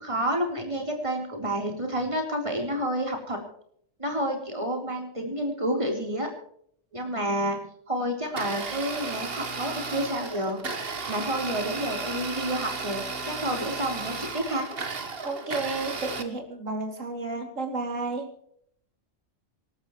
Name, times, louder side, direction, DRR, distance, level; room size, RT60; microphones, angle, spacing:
voice 1, 0.0-3.4 4.0-6.3 6.9-7.6 7.9-10.6 11.1-14.7, right 1 dB, 25° right, 2 dB, 3.8 m, -29 dB
Domestic sounds home sounds, 8.2-16.2, right 4 dB, 50° right, 1.7 m, -34 dB
voice 2, 15.2-18.3, right 3 dB, 80° right, 4 dB, 3.1 m, -32 dB
26.5 x 13.0 x 3.1 m, 0.66 s
omnidirectional pair, 1.3 m